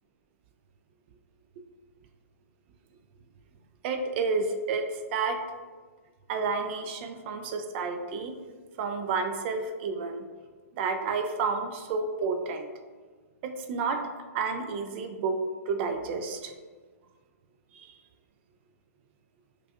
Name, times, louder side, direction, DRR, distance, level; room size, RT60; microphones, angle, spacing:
voice 1, 3.8-5.4 6.3-8.3 8.8-10.3 10.8-12.7 13.4-14.0 14.3-15.4 15.7-16.5 17.7-18.0, right 4 dB, 45° right, 5 dB, 0.3 m, -30 dB
4.7 x 2.3 x 2.4 m, 1.4 s
hypercardioid pair, 130°, 9 cm